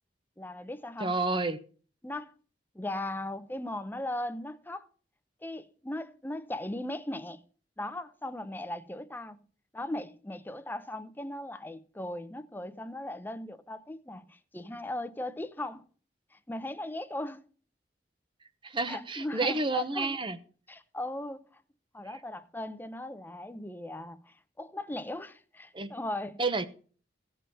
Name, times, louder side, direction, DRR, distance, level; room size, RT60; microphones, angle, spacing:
voice 1, 0.4-1.1 2.0-2.3 2.7-4.9 5.4-7.4 7.8-9.4 9.7-15.8 16.3-17.4 18.9-20.2 20.7-21.6 21.9-26.4, left 1 dB, 10° left, 0.6 m, -38 dB
voice 2, 1.0-1.6 18.6-20.4 25.7-25.9 26.4-26.7, right 3 dB, 30° right, 0.8 m, -30 dB
16.0 x 5.5 x 5.5 m
head